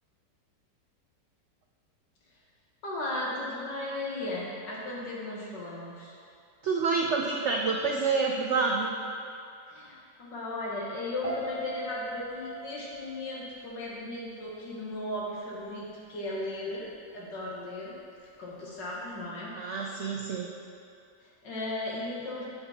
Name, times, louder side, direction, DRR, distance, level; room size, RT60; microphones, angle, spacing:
voice 1, 2.8-6.1 9.7-16.9 17.1-17.9 18.2-19.5 19.8-20.1 21.2-22.4, left 1 dB, 80° left, -5 dB, 2.2 m, -36 dB
voice 2, 6.6-8.9 19.5-20.5, right 4 dB, 80° right, 1 dB, 0.6 m, -28 dB
Piano, 11.2-14.3 14.6-15.0, right 1 dB, 45° left, 2.0 m, -40 dB
8.6 x 6.8 x 4.3 m, 2.5 s
omnidirectional pair, 1.9 m